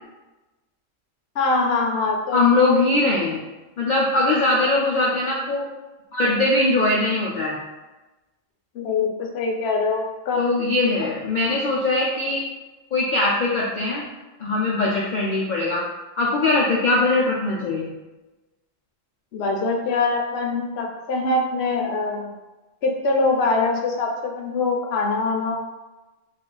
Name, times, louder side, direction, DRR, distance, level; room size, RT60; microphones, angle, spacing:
voice 1, 1.4-2.4 8.7-10.5 19.3-22.3 22.8-25.6, left 3 dB, 65° left, 1 dB, 0.7 m, -23 dB
voice 2, 2.3-3.4 3.8-5.7 6.1-7.6 10.4-12.4 12.9-14.0 14.4-15.8 16.2-17.9, left 2 dB, 80° left, -4 dB, 0.4 m, -21 dB
2.5 x 2.3 x 3.7 m, 1.1 s
omnidirectional pair, 1.3 m